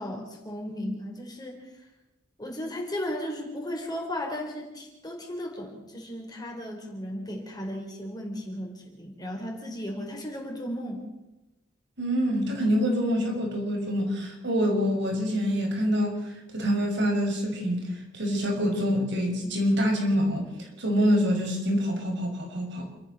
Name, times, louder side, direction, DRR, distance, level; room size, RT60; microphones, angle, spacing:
voice 1, 0.0-1.7 2.4-11.1, left 1 dB, 20° left, 1 dB, 4.5 m, -35 dB
voice 2, 12.0-17.9 18.1-22.9, equal, 60° right, 2 dB, 6.2 m, -26 dB
29.0 x 13.5 x 6.8 m, 0.98 s
head